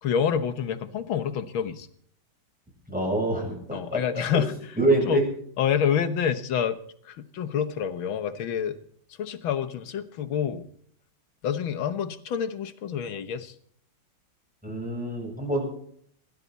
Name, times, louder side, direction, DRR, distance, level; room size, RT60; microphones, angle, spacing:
voice 1, 0.0-1.9 3.7-4.5 5.0-5.2 5.6-6.8 7.1-8.8 9.2-10.7 11.4-13.5, left 8 dB, 75° left, 10 dB, 2.0 m, -27 dB
voice 2, 2.9-4.0 4.3-4.4 4.8-5.2 14.6-15.7, right 2 dB, 5° right, -1 dB, 7.7 m, -25 dB
25.5 x 12.5 x 4.1 m, 0.62 s
omnidirectional pair, 2.2 m